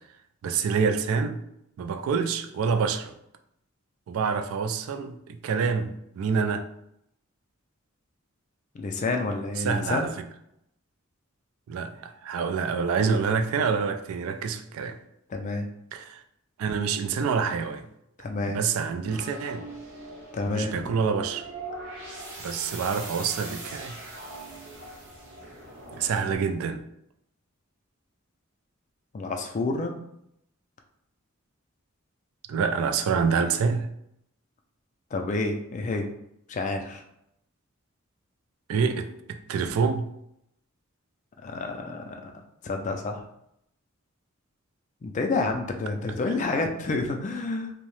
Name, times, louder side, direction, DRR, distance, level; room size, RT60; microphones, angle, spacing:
voice 1, 0.4-1.4 1.8-3.1 4.1-6.7 9.6-10.1 11.7-15.0 15.9-16.2 16.6-17.9 18.5-19.7 20.4-21.5 22.4-24.0 25.9-26.8 32.5-33.9 38.7-40.1, right 5 dB, 80° right, 0.3 m, -27 dB
voice 2, 8.7-10.1 15.3-15.7 18.2-18.6 20.3-20.9 29.1-29.9 35.1-36.1 36.5-37.0 41.4-42.3 42.6-43.2 45.0-47.7, left 3 dB, 35° left, 0.3 m, -29 dB
sound 1, 19.1-26.4, right 2 dB, 60° right, 0.8 m, -41 dB
2.7 x 2.0 x 3.0 m
head